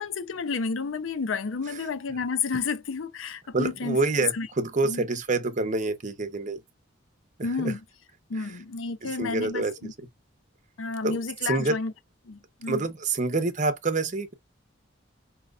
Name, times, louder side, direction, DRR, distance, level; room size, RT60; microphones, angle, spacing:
voice 1, 0.0-4.0 4.3-4.5 4.8-5.1 7.4-7.8 8.3-9.9 10.8-11.9 12.3-12.8, left 4 dB, 80° left, 0.6 m, -31 dB
voice 2, 3.5-6.6 7.4-7.8 8.3-8.6 9.0-10.1 11.0-11.2 11.4-11.8 12.7-14.3, right 3 dB, 40° right, 0.8 m, -27 dB
5.0 x 2.8 x 2.4 m
head